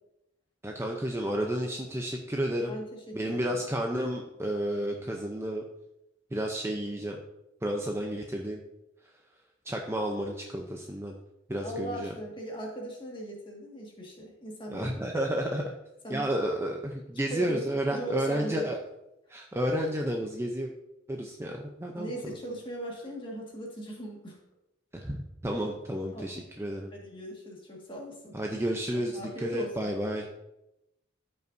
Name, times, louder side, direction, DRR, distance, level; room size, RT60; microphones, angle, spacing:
voice 1, 0.6-2.7 3.1-5.6 6.3-7.2 7.6-8.6 9.7-11.1 11.5-12.1 14.7-15.7 16.1-18.8 19.3-20.7 21.1-22.3 24.9-26.9 28.3-30.3, equal, 15° right, 1 dB, 0.5 m, -31 dB
voice 2, 2.7-3.6 11.5-14.9 16.0-16.3 17.3-18.7 21.9-24.4 26.1-26.4 26.9-28.4 28.9-29.9, right 1 dB, 25° left, -2 dB, 1.7 m, -39 dB
13.5 x 5.5 x 2.6 m, 0.88 s
head